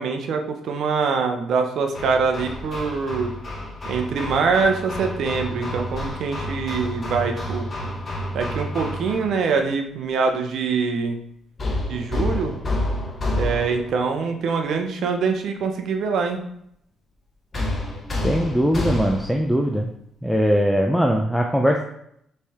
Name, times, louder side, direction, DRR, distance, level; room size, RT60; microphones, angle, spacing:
voice 1, 0.0-3.3 3.9-7.7 8.3-11.2 11.9-12.5 13.3-16.4, right 5 dB, 70° right, 5 dB, 0.6 m, -24 dB
Hammer, 1.9-9.4 11.6-14.0 17.5-19.5, left 1 dB, 30° left, 0.9 m, -29 dB
voice 2, 18.2-19.9 20.2-21.8, equal, ahead, 1 dB, 0.4 m, -20 dB
4.1 x 3.3 x 3.5 m, 0.72 s
cardioid pair, 90°, 0 cm